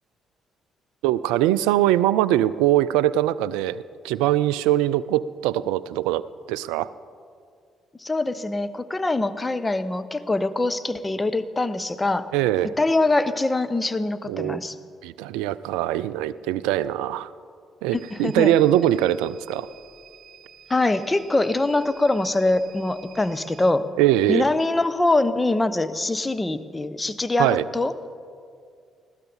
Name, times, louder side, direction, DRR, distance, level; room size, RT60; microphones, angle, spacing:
voice 1, 1.0-6.2 6.5-6.9 12.3-12.7 14.3-14.6 15.0-17.3 17.8-19.7 24.0-24.4 27.4-27.7, right 13 dB, 70° right, 18 dB, 0.3 m, -22 dB
voice 2, 8.0-12.3 12.8-14.7 17.9-18.5 20.7-23.9 24.3-28.1, left 2 dB, 20° left, 13 dB, 0.8 m, -23 dB
sound 1, 17.9-23.7, right 8 dB, 40° right, 2.2 m, -50 dB
19.5 x 15.5 x 4.0 m, 2.2 s
figure-of-eight pair, 45°, 0 cm